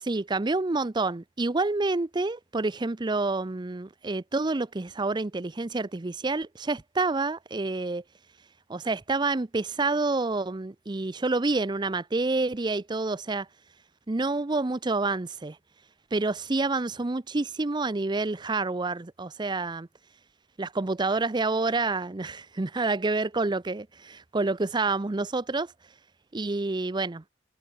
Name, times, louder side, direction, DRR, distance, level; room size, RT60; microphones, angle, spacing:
voice 1, 0.0-8.0 8.7-13.5 14.1-15.6 16.1-19.9 20.6-25.7 26.3-27.2, right 3 dB, 25° right, 0.6 m, -28 dB
head